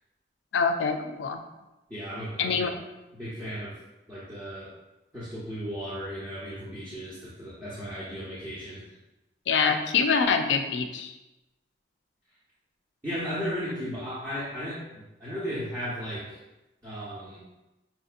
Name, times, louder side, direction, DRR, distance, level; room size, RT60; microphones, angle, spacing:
voice 1, 0.5-1.4 2.4-2.7 9.5-11.1, left 5 dB, 85° left, 7 dB, 0.4 m, -25 dB
voice 2, 1.9-2.8 3.1-3.8 4.1-4.7 5.1-8.8 13.0-14.8 15.2-16.3 16.8-17.4, equal, 15° right, -11 dB, 0.9 m, -35 dB
5.6 x 2.6 x 2.5 m, 0.99 s
head